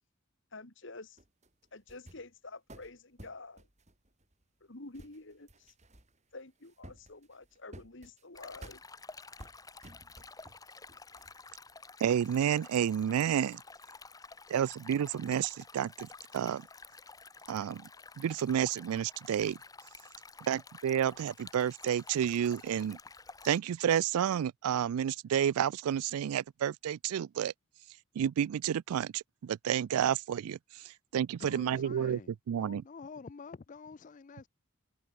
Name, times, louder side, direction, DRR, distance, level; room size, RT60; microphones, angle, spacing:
voice 1, 0.5-1.2 1.7-3.7 4.6-5.7 6.3-8.8, left 3 dB, 55° left, 1.9 m, -49 dB
sound 1, 1.2-2.3 2.7-4.6 4.9-6.4 6.6-8.2 8.6-8.8 9.4-10.6 10.9-11.7, right 1 dB, 30° right, 4.6 m, -54 dB
Stream, 8.3-23.6, left 4 dB, 15° left, 1.5 m, -51 dB
voice 2, 12.0-13.6 14.5-16.1 16.3-16.7 17.5-17.9 18.2-19.6 20.5-23.0 23.4-27.5 28.2-32.2 32.5-32.8, right 9 dB, 85° right, 0.3 m, -30 dB
voice 3, 31.4-34.5, left 4 dB, 35° left, 0.4 m, -48 dB
head